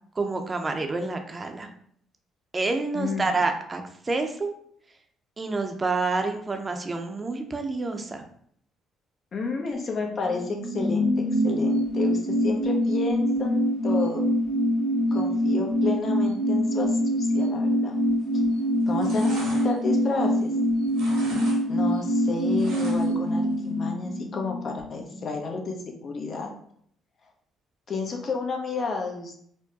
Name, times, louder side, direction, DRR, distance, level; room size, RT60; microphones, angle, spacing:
voice 1, 0.1-1.7 2.5-4.5 5.4-8.2, right 3 dB, 30° right, 5 dB, 0.6 m, -28 dB
voice 2, 2.9-3.3 9.3-14.3 15.1-17.9 18.9-20.5 21.7-26.5 27.9-29.3, left 4 dB, 50° left, 2 dB, 0.8 m, -31 dB
sound 1, 10.1-25.3 25.6-25.7, equal, 70° left, 1.4 m, -25 dB
sound 2, 18.1-18.5 18.8-20.6 20.9-21.6 21.9-23.3 23.6-23.7, right 2 dB, 85° right, 1.2 m, -38 dB
4.5 x 2.2 x 2.8 m, 0.64 s
supercardioid pair, 60°, 0 cm